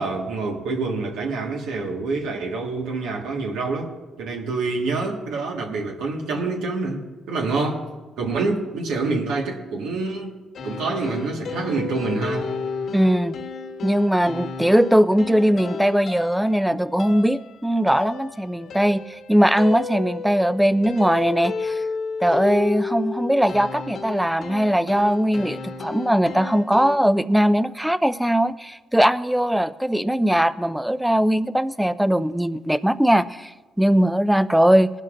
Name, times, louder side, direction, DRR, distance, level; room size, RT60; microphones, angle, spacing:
voice 1, 0.0-3.9 4.2-7.9 8.2-10.3 10.6-12.5, right 3 dB, 90° right, 1 dB, 1.6 m, -26 dB
sound 1, 10.5-27.0, left 5 dB, 60° left, 1.3 m, -33 dB
voice 2, 12.9-13.4 13.8-21.8 22.2-33.5 33.8-34.9, equal, 5° right, 14 dB, 0.4 m, -20 dB
19.0 x 12.0 x 2.5 m, 1.3 s
cardioid pair, 90°, 0 cm